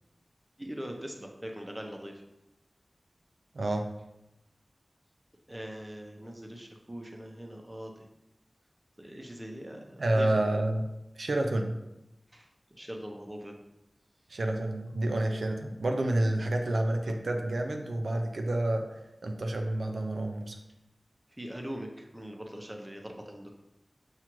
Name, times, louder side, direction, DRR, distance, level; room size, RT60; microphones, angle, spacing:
voice 1, 0.6-2.2 5.5-8.1 9.0-10.3 12.3-12.5 12.8-13.5 21.4-23.5, equal, 20° right, 2 dB, 0.6 m, -41 dB
voice 2, 3.5-3.9 10.0-10.8 11.2-11.8 14.3-18.8 19.2-20.6, right 1 dB, 90° right, 3 dB, 0.4 m, -29 dB
5.9 x 2.4 x 3.0 m, 0.92 s
wide cardioid pair, 65°, 0 cm